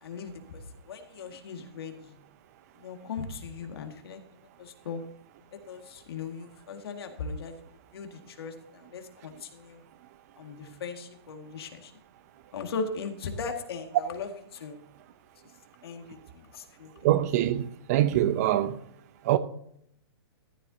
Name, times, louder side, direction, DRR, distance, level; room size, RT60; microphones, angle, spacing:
voice 1, 0.0-2.1 2.8-4.2 4.6-5.0 5.5-7.6 7.9-9.8 10.4-11.9 12.5-14.8 15.8-16.9, left 5 dB, 70° left, 2.0 m, -38 dB
voice 2, 17.0-18.8 19.2-19.4, right 13 dB, 40° right, 0.7 m, -24 dB
14.5 x 10.5 x 2.8 m
hypercardioid pair, 155°, 13 cm